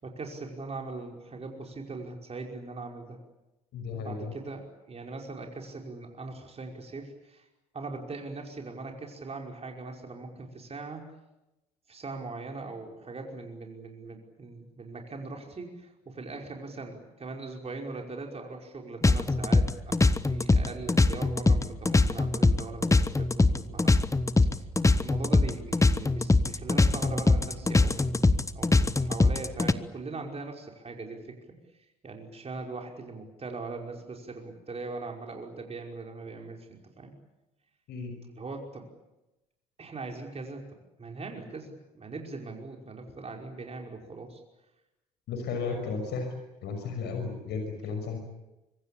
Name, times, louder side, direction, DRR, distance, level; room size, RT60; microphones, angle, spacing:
voice 1, 0.0-3.2 3.9-7.4 7.7-11.0 11.9-20.0 20.2-24.1 24.5-24.7 25.0-31.4 32.0-37.1 38.3-38.9 39.8-40.6 41.0-44.4 45.4-45.8, right 3 dB, 30° right, 2 dB, 5.3 m, -40 dB
voice 2, 3.7-4.3 37.9-38.1 45.3-46.3 46.6-48.2, left 5 dB, 60° left, 5 dB, 6.1 m, -34 dB
sound 1, 19.0-29.7, left 3 dB, 15° left, 1.3 m, -22 dB
25.0 x 24.0 x 8.7 m, 0.96 s
figure-of-eight pair, 50°, 19 cm